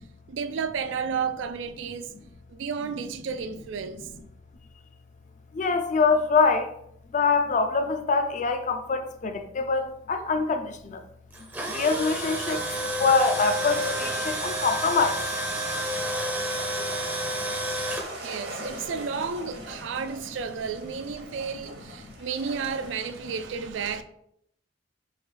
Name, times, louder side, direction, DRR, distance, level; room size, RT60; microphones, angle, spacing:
voice 1, 0.3-2.1 2.5-4.1 18.2-24.0, right 6 dB, 75° right, 0.4 m, -32 dB
voice 2, 5.5-6.7 7.1-11.0 11.7-12.6 13.0-15.2 18.7-18.8 22.0-22.1, left 4 dB, 40° left, 0.4 m, -24 dB
Tools, 11.3-18.0, right 1 dB, 10° right, 0.5 m, -30 dB
sound 1, 13.1-23.5, right 1 dB, 55° right, 0.9 m, -42 dB
4.6 x 2.6 x 3.3 m
head